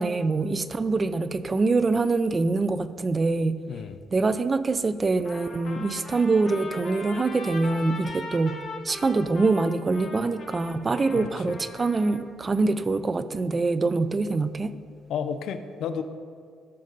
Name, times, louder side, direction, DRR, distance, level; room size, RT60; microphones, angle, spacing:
voice 1, 0.0-3.6 4.1-14.7, right 3 dB, 30° right, 13 dB, 0.4 m, -24 dB
voice 2, 3.7-4.0 11.1-11.6 15.1-16.0, left 7 dB, 75° left, 10 dB, 0.5 m, -32 dB
Trumpet, 5.2-12.3, left 2 dB, 45° left, 1.4 m, -40 dB
13.0 x 5.3 x 3.9 m, 2.1 s
cardioid pair, 90°, 0 cm